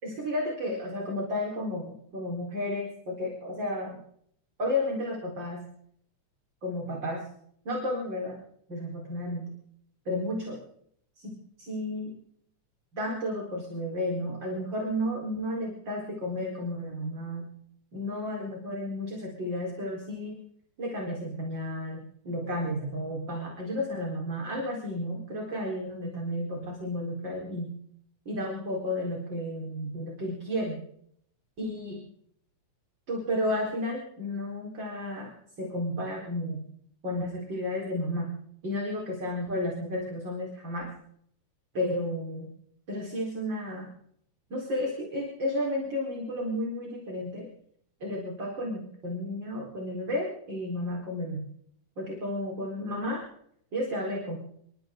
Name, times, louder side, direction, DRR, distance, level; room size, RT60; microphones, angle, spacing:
voice 1, 0.0-4.0 4.6-5.6 6.6-7.3 7.6-8.4 8.7-9.5 10.0-10.6 11.2-12.2 12.9-17.5 17.9-20.4 20.8-27.7 28.2-30.8 31.6-32.0 33.1-36.7 37.0-38.3 38.6-40.9 41.7-42.5 42.9-43.9 44.5-47.5 48.0-51.5 52.0-53.2 53.7-54.4, left 1 dB, 35° right, -2 dB, 5.2 m, -32 dB
28.0 x 25.0 x 3.9 m, 0.70 s
omnidirectional pair, 3.4 m